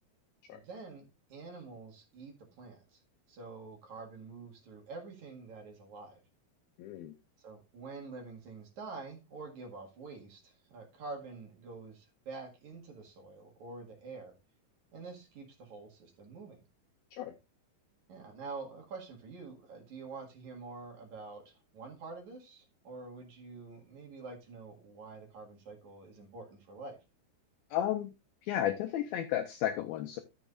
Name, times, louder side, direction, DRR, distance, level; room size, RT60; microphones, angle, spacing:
voice 1, 0.5-3.0 3.3-6.2 7.4-14.3 14.9-16.7 18.1-27.0, right 3 dB, 55° right, 2.6 m, -47 dB
voice 2, 6.8-7.1 17.1-17.3 27.7-28.1 28.4-30.2, left 12 dB, 90° left, 2.1 m, -33 dB
14.0 x 7.1 x 2.4 m
omnidirectional pair, 5.0 m